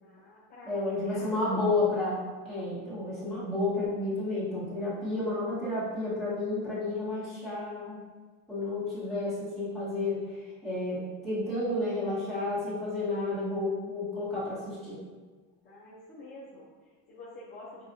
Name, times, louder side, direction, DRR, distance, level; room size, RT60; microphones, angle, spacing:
voice 1, 0.0-1.8 2.7-3.0 15.6-17.9, left 1 dB, 25° left, -7 dB, 0.5 m, -48 dB
voice 2, 0.6-8.0 8.5-15.0, left 2 dB, ahead, -12 dB, 1.4 m, -31 dB
5.1 x 2.4 x 2.7 m, 1.4 s
cardioid pair, 160°, 40 cm